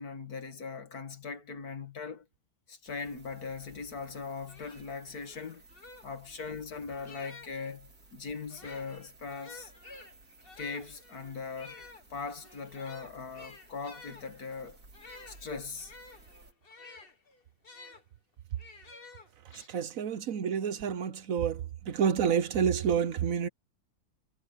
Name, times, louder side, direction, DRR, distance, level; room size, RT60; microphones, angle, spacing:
voice 1, 0.0-2.2 2.7-5.6 6.0-9.7 10.6-11.8 12.1-14.8 15.3-15.9 19.5-19.7, left 5 dB, 85° left, 2.6 m, -40 dB
sound 1, 2.9-16.5, right 3 dB, 85° right, 4.5 m, -58 dB
sound 2, 4.5-7.7 8.4-18.0 18.6-19.7, left 3 dB, 40° left, 2.0 m, -52 dB
voice 2, 19.4-23.5, right 7 dB, 65° right, 1.2 m, -29 dB
omnidirectional pair, 1.6 m